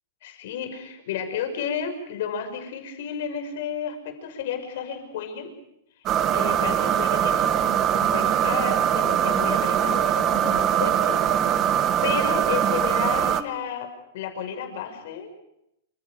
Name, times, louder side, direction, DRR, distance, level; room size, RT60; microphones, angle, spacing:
voice 1, 0.2-5.5 6.3-11.7 12.0-13.9 14.1-15.3, left 8 dB, 60° left, 6 dB, 5.8 m, -32 dB
sound 1, 6.1-13.4, right 10 dB, 25° right, 1.2 m, -22 dB
28.5 x 26.5 x 5.1 m, 0.82 s
supercardioid pair, 155°, 0 cm